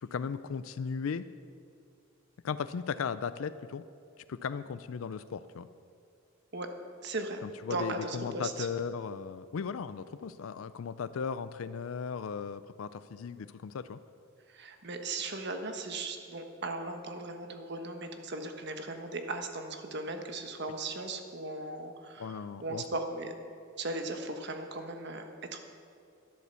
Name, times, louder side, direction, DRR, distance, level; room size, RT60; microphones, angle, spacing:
voice 1, 0.0-1.2 2.4-3.8 4.3-5.7 7.4-14.0 22.2-22.9, left 6 dB, 80° left, 13 dB, 0.4 m, -36 dB
voice 2, 7.0-7.4 7.7-8.7 14.5-23.3 23.8-25.6, right 2 dB, 55° right, 5 dB, 1.3 m, -37 dB
12.5 x 11.0 x 6.9 m, 2.5 s
head